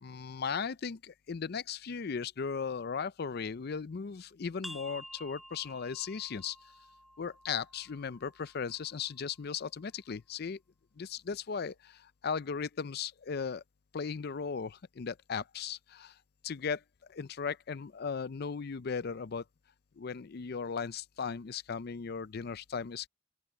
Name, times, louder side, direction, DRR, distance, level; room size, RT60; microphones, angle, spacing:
voice 1, 0.0-6.6 7.2-10.6 11.0-13.6 13.9-16.1 16.4-16.8 17.1-19.4 20.0-23.1, left 6 dB, 55° left, 0.5 m, -37 dB
sound 1, 4.6-10.0, equal, ahead, 5.0 m, -52 dB
open air
head